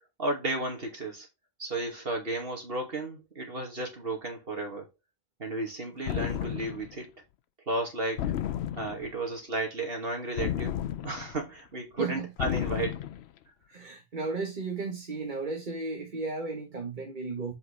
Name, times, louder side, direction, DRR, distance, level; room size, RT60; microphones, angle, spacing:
voice 1, 0.2-1.3 1.6-4.9 5.4-7.2 7.7-8.3 8.8-10.8 11.0-13.0, right 2 dB, 65° right, 2.6 m, -33 dB
sound 1, 6.1-6.9 8.2-9.1 10.4-11.4 12.4-13.2, left 11 dB, 90° left, 0.9 m, -32 dB
voice 2, 12.0-12.3 13.7-17.5, right 3 dB, 50° right, 1.6 m, -34 dB
7.9 x 5.4 x 3.4 m
omnidirectional pair, 1.1 m